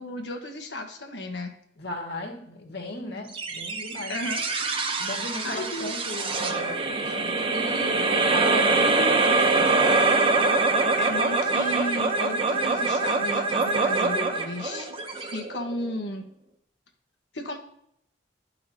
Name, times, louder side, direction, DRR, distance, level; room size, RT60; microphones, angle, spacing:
voice 1, 0.0-1.5 4.1-4.4 5.4-6.0 8.8-9.2 11.0-14.9 15.1-16.3 17.3-17.6, left 1 dB, 90° left, 4 dB, 1.3 m, -33 dB
voice 2, 1.8-4.2 5.0-9.0 9.3-10.1, left 1 dB, 65° left, 1 dB, 1.8 m, -37 dB
sound 1, 3.3-16.0, right 3 dB, 30° right, 0.8 m, -24 dB
11.5 x 5.7 x 2.8 m, 0.72 s
head